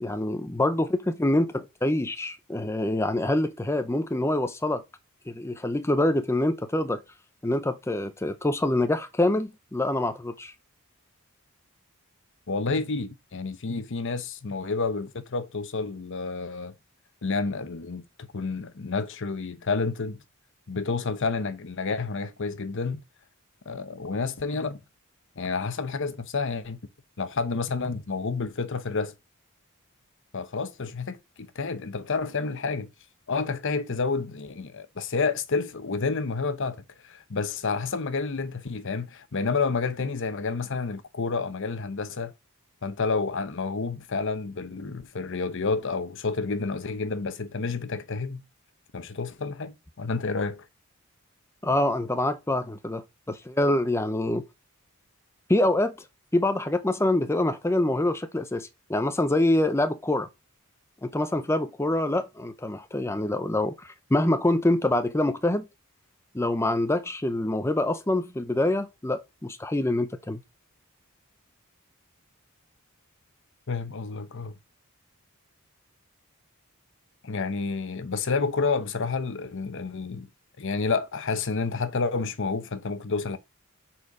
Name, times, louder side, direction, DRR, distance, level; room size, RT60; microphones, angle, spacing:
voice 1, 0.0-4.8 5.3-7.0 7.4-10.5 51.6-54.5 55.5-56.0 56.3-60.3 61.0-65.7 66.3-70.4, left 1 dB, 10° left, 0.6 m, -25 dB
voice 2, 12.5-16.7 17.2-18.0 18.3-20.2 20.7-23.0 23.7-24.8 25.4-26.8 27.2-29.1 30.3-32.9 33.3-42.3 42.8-48.4 48.9-50.6 73.7-74.5 77.2-80.3 80.6-83.4, left 4 dB, 60° left, 0.8 m, -29 dB
8.3 x 4.4 x 5.2 m
head